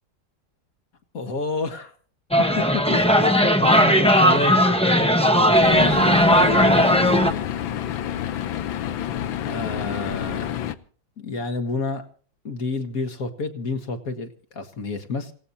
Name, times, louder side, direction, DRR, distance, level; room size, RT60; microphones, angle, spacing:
voice 1, 1.1-1.9 2.6-3.2 3.6-7.5 9.4-10.6 11.2-12.0 12.4-15.3, left 3 dB, 50° left, 7 dB, 2.0 m, -30 dB
sound 1, 2.3-7.3, equal, 5° left, 0.8 m, -17 dB
sound 2, 5.6-10.8, left 10 dB, 85° left, 1.7 m, -29 dB
27.0 x 17.0 x 2.8 m, 0.43 s
omnidirectional pair, 2.1 m